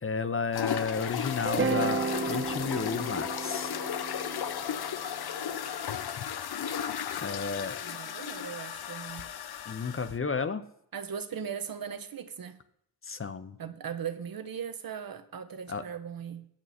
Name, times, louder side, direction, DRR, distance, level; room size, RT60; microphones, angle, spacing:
voice 1, 0.0-3.7 7.2-7.8 9.7-10.6 13.0-13.6 15.7-15.8, left 5 dB, 35° left, 11 dB, 0.7 m, -32 dB
sound 1, 0.5-10.2, left 9 dB, 70° left, 0.7 m, -35 dB
sound 2, 1.4-5.6, right 5 dB, 30° right, 0.6 m, -33 dB
voice 2, 7.8-9.3 10.9-12.6 13.6-16.5, right 7 dB, 60° right, 9 dB, 1.0 m, -38 dB
8.9 x 7.9 x 4.2 m, 0.69 s
wide cardioid pair, 105°, 39 cm